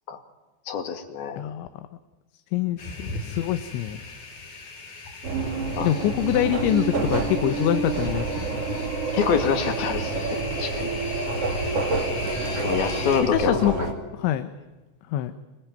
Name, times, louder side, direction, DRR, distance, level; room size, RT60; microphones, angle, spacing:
voice 1, 0.7-1.4 5.8-5.9 9.1-10.3 10.6-10.9 12.6-13.9, left 6 dB, 60° left, 7 dB, 3.8 m, -26 dB
voice 2, 1.4-1.9 2.5-4.0 5.8-8.5 13.3-13.8 14.2-14.5 15.1-15.3, left 12 dB, 85° left, 10 dB, 3.4 m, -25 dB
sound 1, 2.8-13.2, left 3 dB, 45° left, 5.4 m, -38 dB
sound 2, 5.2-13.9, right 3 dB, 35° right, 3.2 m, -28 dB
25.5 x 24.0 x 9.2 m, 1.2 s
omnidirectional pair, 5.2 m